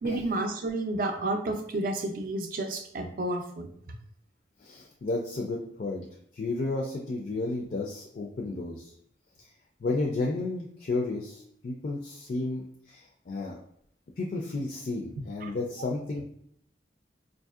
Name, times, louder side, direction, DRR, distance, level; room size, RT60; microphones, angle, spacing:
voice 1, 0.0-3.7 15.4-15.5, right 2 dB, 50° right, 5 dB, 0.5 m, -31 dB
voice 2, 4.6-6.1 6.3-8.9 9.4-9.5 9.8-13.6 14.2-16.2, left 2 dB, 45° left, 0 dB, 0.4 m, -32 dB
4.7 x 2.6 x 2.4 m, 0.68 s
head